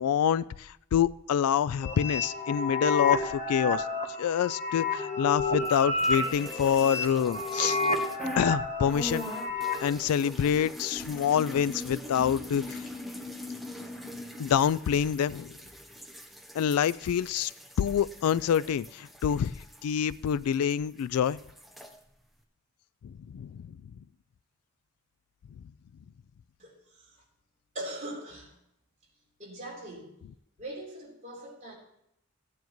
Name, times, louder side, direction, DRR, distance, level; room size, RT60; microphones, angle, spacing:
voice 1, 0.0-3.9 4.2-7.8 8.4-9.3 9.8-12.9 14.4-15.6 16.5-17.5 17.8-19.5 19.8-21.4 23.0-23.7, left 8 dB, 90° left, 19 dB, 0.3 m, -27 dB
sound 1, 1.8-9.9, left 3 dB, 30° left, 1.1 m, -30 dB
sound 2, 5.6-8.5 8.8-20.7 21.0-21.9, left 1 dB, ahead, 0.8 m, -42 dB
voice 2, 26.6-27.2 27.7-28.6 29.4-30.2 30.6-31.7, right 1 dB, 35° right, -3 dB, 3.7 m, -41 dB
16.0 x 9.3 x 3.1 m, 0.78 s
head